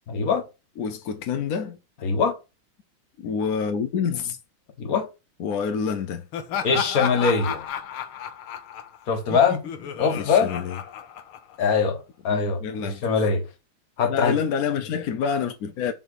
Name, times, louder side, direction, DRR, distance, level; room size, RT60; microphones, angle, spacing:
voice 1, 0.1-0.4 2.0-2.4 4.8-5.1 6.6-7.6 9.1-9.6 10.0-10.5 11.6-13.4 14.0-14.4, left 5 dB, 50° left, 1.5 m, -22 dB
voice 2, 0.8-1.8 3.2-4.4 5.4-6.3 10.1-10.8 12.3-13.0 14.1-15.9, left 6 dB, 70° left, 0.9 m, -27 dB
Laughter, 6.3-11.8, left 8 dB, 85° left, 1.8 m, -32 dB
7.5 x 3.5 x 6.3 m
omnidirectional pair, 2.3 m